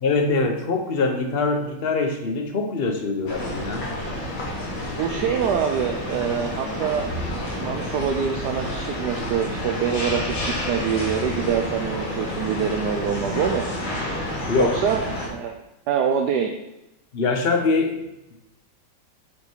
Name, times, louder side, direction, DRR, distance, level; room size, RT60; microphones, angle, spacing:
voice 1, 0.0-3.9 14.5-14.9 17.1-18.1, left 3 dB, 45° left, 4 dB, 0.8 m, -23 dB
sound 1, 3.3-15.3, left 1 dB, 70° left, 2.8 m, -29 dB
voice 2, 5.0-13.7 14.6-15.0 15.3-15.5 15.9-16.5, right 7 dB, 70° right, 3 dB, 1.1 m, -25 dB
9.0 x 5.3 x 4.6 m, 0.90 s
omnidirectional pair, 2.2 m